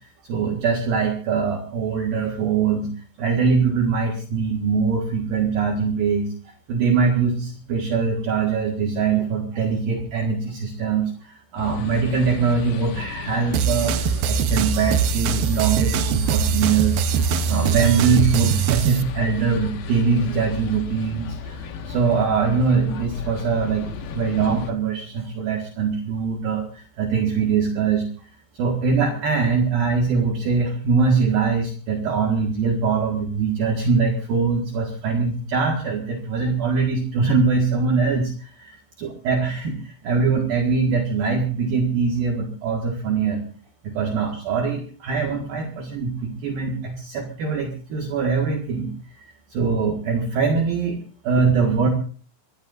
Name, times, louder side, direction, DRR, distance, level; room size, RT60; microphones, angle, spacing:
voice 1, 0.2-2.9 3.2-17.0 17.5-28.0 28.5-43.5 43.8-48.9 49.5-51.0 51.2-51.9, right 5 dB, 60° right, 1 dB, 3.1 m, -22 dB
sound 1, 11.6-24.7, left 5 dB, 60° left, 3.1 m, -34 dB
sound 2, 13.5-19.0, right 7 dB, 75° right, 2.2 m, -22 dB
24.5 x 17.5 x 2.6 m, 0.40 s
omnidirectional pair, 5.3 m